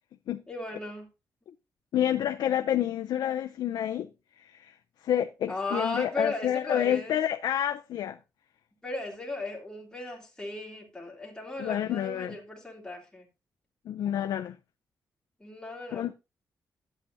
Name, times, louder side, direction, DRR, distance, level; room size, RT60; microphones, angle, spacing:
voice 1, 0.5-1.1 5.5-7.2 8.8-13.3 15.4-16.1, left 2 dB, 10° left, 2.6 m, -36 dB
voice 2, 1.9-4.1 4.4-4.7 5.0-8.2 11.6-12.4 13.9-14.6 15.9-16.1, left 10 dB, 85° left, 0.5 m, -29 dB
11.5 x 8.4 x 2.7 m
wide cardioid pair, 170°, 7 cm